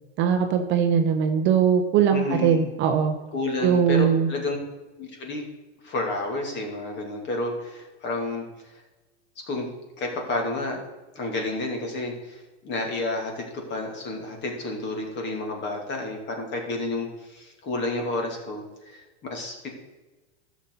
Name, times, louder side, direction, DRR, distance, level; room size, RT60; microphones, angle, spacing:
voice 1, 0.2-3.2 3.6-4.3, right 7 dB, 30° right, 5 dB, 0.9 m, -21 dB
voice 2, 2.1-2.7 3.3-4.6 5.0-5.4 5.8-8.8 9.5-9.7 10.0-10.8 11.1-12.4 12.6-19.0 19.3-19.7, left 2 dB, 30° left, 1 dB, 2.6 m, -30 dB
12.5 x 7.2 x 4.0 m, 1.2 s
supercardioid pair, 140°, 36 cm